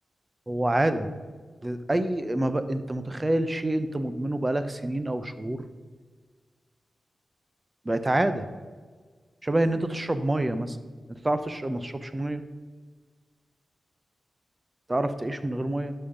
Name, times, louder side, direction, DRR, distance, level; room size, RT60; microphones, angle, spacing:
voice 1, 0.5-1.1 1.6-5.7 7.8-8.5 9.4-10.8 11.1-12.4 14.9-15.9, right 1 dB, 25° right, 11 dB, 0.8 m, -27 dB
11.5 x 5.6 x 5.2 m, 1.5 s
cardioid pair, 75°, 0 cm